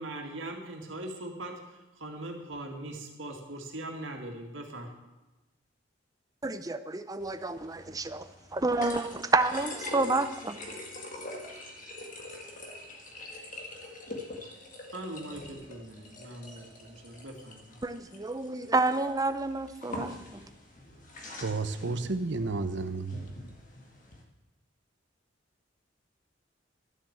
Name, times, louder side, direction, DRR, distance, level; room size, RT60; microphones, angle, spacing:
voice 1, 0.0-4.9 14.9-17.8, right 1 dB, 85° right, 2 dB, 2.1 m, -41 dB
voice 2, 6.4-8.2 8.5-10.6 17.8-20.4, right 3 dB, 20° right, 11 dB, 0.6 m, -29 dB
sound 1, 7.2-24.2, left 2 dB, 45° left, 1.9 m, -44 dB
voice 3, 21.4-23.3, right 3 dB, 65° right, 9 dB, 0.7 m, -31 dB
12.5 x 7.4 x 7.9 m, 1.1 s
head